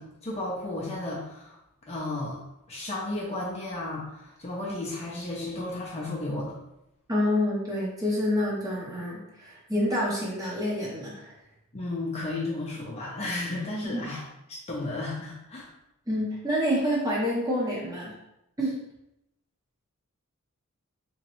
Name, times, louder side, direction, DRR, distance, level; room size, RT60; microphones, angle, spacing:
voice 1, 0.0-1.6 1.9-6.6 11.7-14.2 14.5-15.7, left 2 dB, 30° left, -4 dB, 0.5 m, -33 dB
voice 2, 7.1-11.3 13.9-14.0 16.1-18.1 18.6-18.8, left 1 dB, 15° right, -5 dB, 0.7 m, -27 dB
3.5 x 3.0 x 3.0 m, 0.86 s
head